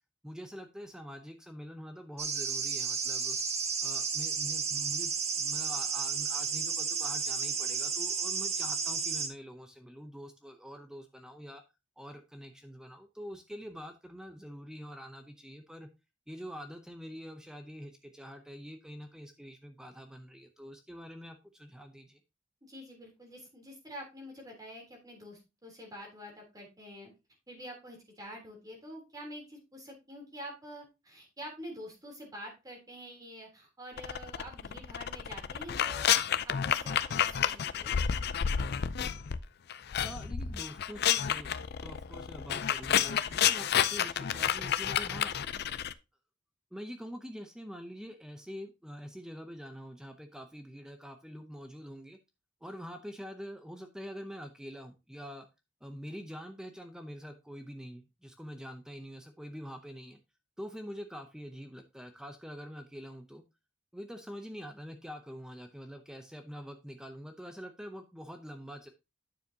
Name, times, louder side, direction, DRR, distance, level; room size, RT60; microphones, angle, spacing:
voice 1, 0.2-3.4 3.8-11.6 12.0-15.9 16.3-22.2 40.0-45.3 46.7-52.2 52.6-55.5 55.8-60.2 60.6-63.4 63.9-68.9, equal, 5° right, 6 dB, 0.7 m, -45 dB
sound 1, 2.2-9.3, right 5 dB, 35° right, 1.3 m, -32 dB
voice 2, 22.6-27.1 27.5-36.1 36.4-38.0, equal, 20° right, 0 dB, 3.4 m, -47 dB
sound 2, 34.0-39.4 39.7-45.9, left 9 dB, 55° left, 0.5 m, -30 dB
9.4 x 7.0 x 2.8 m, 0.26 s
head